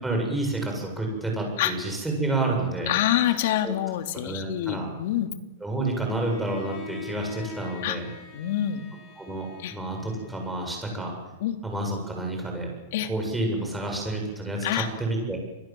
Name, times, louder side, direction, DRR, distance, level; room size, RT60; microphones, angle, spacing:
voice 1, 0.0-2.9 3.6-3.7 4.2-4.9 5.6-8.0 9.2-11.1 11.6-12.7 13.1-15.4, right 2 dB, 5° right, 1 dB, 7.7 m, -29 dB
voice 2, 2.9-5.3 7.8-8.0 8.3-8.8 9.6-9.8 11.4-11.6 12.9-13.1 14.6-14.9, left 12 dB, 60° left, 6 dB, 3.1 m, -26 dB
Bowed string instrument, 6.1-11.1, left 8 dB, 40° left, 7.3 m, -43 dB
29.5 x 22.5 x 7.9 m, 1.0 s
supercardioid pair, 160°, 0 cm